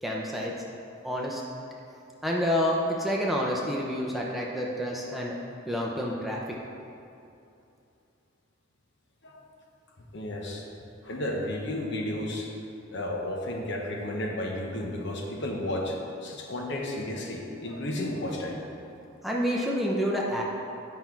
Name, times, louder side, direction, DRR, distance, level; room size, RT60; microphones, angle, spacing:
voice 1, 0.0-0.5 1.0-1.4 2.2-5.4 5.7-6.4 19.2-20.4, equal, ahead, -3 dB, 0.7 m, -28 dB
voice 2, 10.1-10.6 11.0-12.5 12.9-18.6, left 1 dB, 60° left, 1 dB, 1.0 m, -32 dB
9.6 x 5.7 x 4.5 m, 2.6 s
head